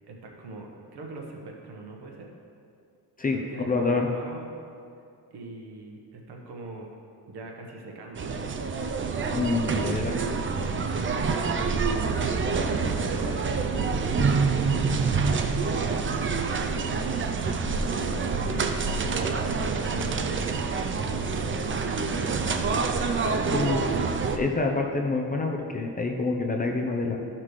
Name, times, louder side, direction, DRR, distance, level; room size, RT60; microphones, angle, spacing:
voice 1, 0.1-2.3 3.3-4.5 5.3-6.9 7.3-8.4 10.5-15.2 15.6-17.3 17.9-18.5 19.7-20.5 20.9-22.1, right 2 dB, 75° right, 0 dB, 1.4 m, -42 dB
voice 2, 3.7-4.1 9.3-10.2 23.5-23.8 24.3-27.2, left 3 dB, 20° left, 2 dB, 0.7 m, -26 dB
sound 1, 8.1-24.4, right 4 dB, 30° right, 0.5 m, -27 dB
13.5 x 5.9 x 3.2 m, 2.4 s
cardioid pair, 120°, 40 cm